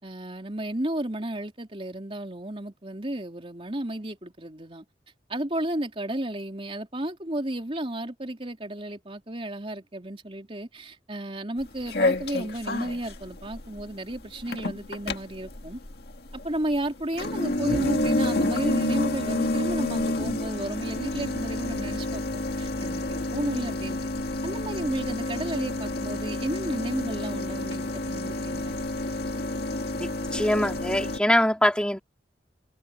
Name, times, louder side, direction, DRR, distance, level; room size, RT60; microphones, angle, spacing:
voice 1, 0.0-4.8 5.3-15.8 16.4-24.0 24.4-28.8, right 1 dB, 30° right, 3.4 m, -33 dB
sound 1, 11.6-31.2, left 2 dB, 60° left, 2.0 m, -29 dB
voice 2, 30.0-32.0, left 1 dB, 5° left, 3.6 m, -23 dB
head